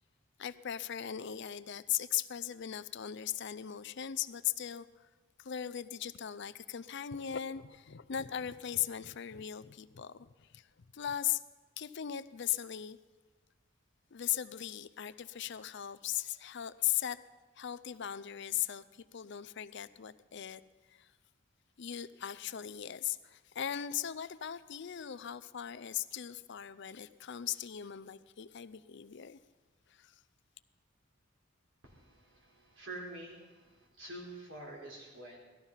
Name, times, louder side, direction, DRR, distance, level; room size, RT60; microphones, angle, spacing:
voice 1, 0.4-4.9 5.4-10.7 10.9-11.4 11.8-13.0 14.1-17.2 17.6-20.6 20.9-21.1 21.8-29.4 29.9-30.1, left 11 dB, 60° left, 15 dB, 0.5 m, -38 dB
voice 2, 31.8-35.4, right 1 dB, 65° right, -1 dB, 4.4 m, -47 dB
18.0 x 13.5 x 5.7 m, 1.3 s
head